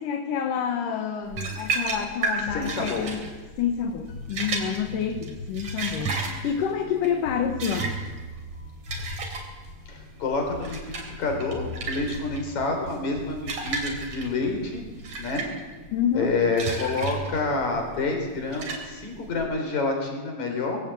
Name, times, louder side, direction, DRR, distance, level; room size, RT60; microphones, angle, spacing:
voice 1, 0.0-3.2 3.6-7.9 15.9-16.4, left 8 dB, 70° left, 5 dB, 2.7 m, -28 dB
sound 1, 1.3-19.5, right 3 dB, 55° right, 4.5 m, -33 dB
voice 2, 2.5-3.1 9.9-14.8 15.2-15.4 16.1-20.8, left 3 dB, 55° left, 3 dB, 5.3 m, -28 dB
sound 2, 2.5-15.2, left 2 dB, 40° left, 3.6 m, -41 dB
21.0 x 16.0 x 8.4 m, 1.3 s
omnidirectional pair, 4.0 m